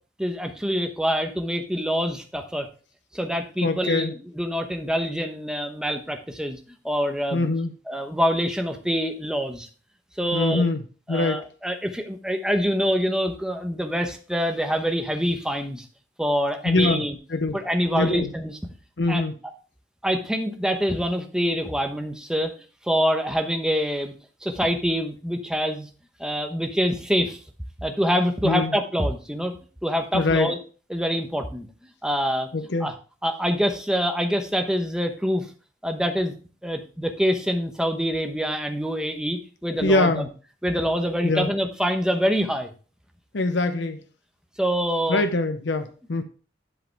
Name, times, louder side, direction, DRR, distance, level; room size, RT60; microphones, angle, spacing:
voice 1, 0.2-2.7 3.1-6.6 6.8-7.5 7.9-9.7 10.2-10.7 11.1-15.8 16.2-17.2 17.5-18.6 19.1-19.2 20.0-22.5 22.8-24.1 24.4-25.9 26.2-27.4 27.8-29.5 29.8-30.6 30.9-31.7 32.0-32.5 32.8-32.9 33.2-35.5 35.8-36.3 36.6-40.3 40.6-42.7 44.6-45.2, equal, 5° right, 5 dB, 1.0 m, -25 dB
voice 2, 3.6-4.1 7.3-7.7 10.3-10.8 11.1-11.5 16.6-17.0 17.3-17.6 17.9-18.3 19.0-19.3 28.4-28.7 30.1-30.5 32.5-32.9 39.8-40.3 41.2-41.5 43.3-44.0 45.1-46.2, left 2 dB, 75° left, 8 dB, 0.7 m, -23 dB
11.0 x 5.0 x 3.4 m, 0.37 s
head